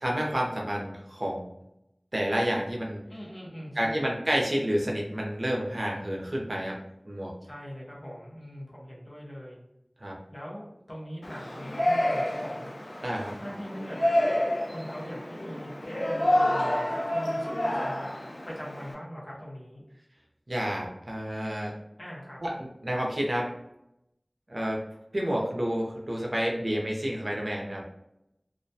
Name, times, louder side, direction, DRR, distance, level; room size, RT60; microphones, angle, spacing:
voice 1, 0.0-1.5 2.1-3.0 3.8-6.8 7.1-7.3 10.0-10.2 13.0-13.3 20.5-21.7 22.4-22.5 22.8-23.5 24.5-24.8 25.1-27.8, equal, 65° right, -1 dB, 0.5 m, -29 dB
voice 2, 3.1-4.1 7.4-9.6 10.3-12.7 13.4-14.2 14.7-18.1 18.4-19.8 22.0-22.4, equal, 55° left, -5 dB, 0.7 m, -41 dB
Yell, 11.2-18.9, left 1 dB, 85° left, 0.4 m, -29 dB
2.3 x 2.1 x 2.7 m, 0.85 s
wide cardioid pair, 40°, 0 cm